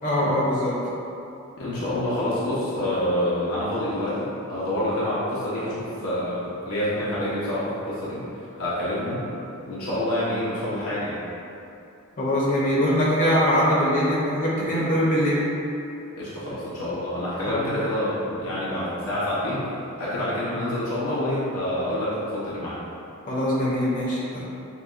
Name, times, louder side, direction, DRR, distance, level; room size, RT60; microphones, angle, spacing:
voice 1, 0.0-0.8 12.2-15.4 17.5-17.7 23.3-24.4, equal, 35° left, -6 dB, 0.7 m, -22 dB
voice 2, 1.6-9.2 9.6-11.2 16.2-19.7 20.0-22.8, left 1 dB, 75° left, -9 dB, 0.9 m, -27 dB
6.7 x 2.2 x 2.5 m, 2.8 s
head